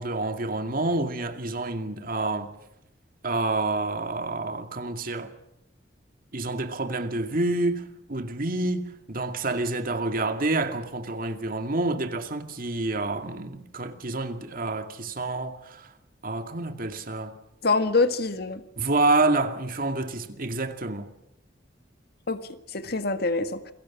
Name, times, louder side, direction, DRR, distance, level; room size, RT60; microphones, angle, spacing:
voice 1, 0.0-2.5 3.2-5.3 6.3-15.9 16.2-17.3 18.8-21.1, right 2 dB, 50° right, 2.3 m, -28 dB
voice 2, 17.6-18.6 22.3-23.7, left 3 dB, 60° left, 1.7 m, -25 dB
29.0 x 22.5 x 7.4 m
head